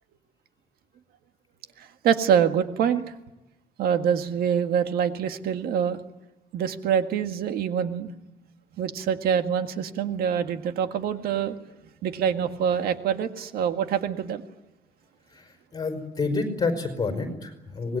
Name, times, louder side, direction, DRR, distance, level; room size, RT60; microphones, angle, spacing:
voice 1, 1.8-3.1 3.8-6.0 6.5-8.1 8.8-11.6 12.0-14.4, right 8 dB, 80° right, 8 dB, 1.8 m, -25 dB
voice 2, 15.7-18.0, left 3 dB, 25° left, 7 dB, 5.0 m, -28 dB
25.5 x 20.5 x 9.6 m, 0.97 s
cardioid pair, 170°, 15 cm